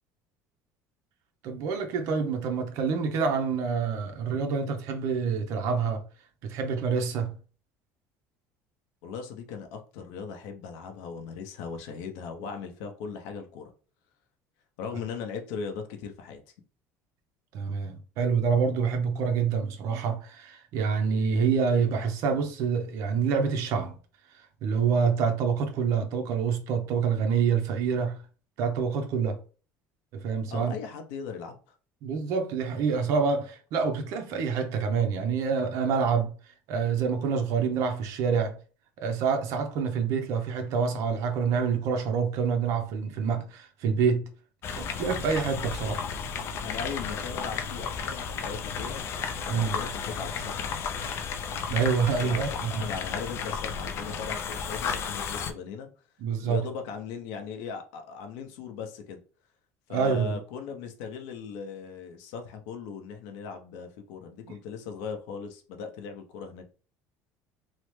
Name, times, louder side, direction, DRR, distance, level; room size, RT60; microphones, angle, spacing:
voice 1, 1.4-6.0 6.4-7.3 17.5-23.9 24.6-28.2 28.6-29.4 30.1-30.7 32.0-36.3 36.7-38.5 39.0-44.2 44.8-46.0 49.5-49.7 51.7-52.9 56.2-56.7 59.9-60.4 64.5-64.6, right 6 dB, 60° right, 0.6 m, -27 dB
voice 2, 9.0-13.7 14.8-16.4 30.5-31.7 46.6-49.0 49.4-50.7 52.2-55.9 56.4-59.2 59.9-66.7, left 6 dB, 85° left, 0.6 m, -38 dB
Greenhouse Watering, 44.6-55.5, left 6 dB, 45° left, 0.4 m, -33 dB
3.1 x 2.0 x 3.1 m
cardioid pair, 140°, 6 cm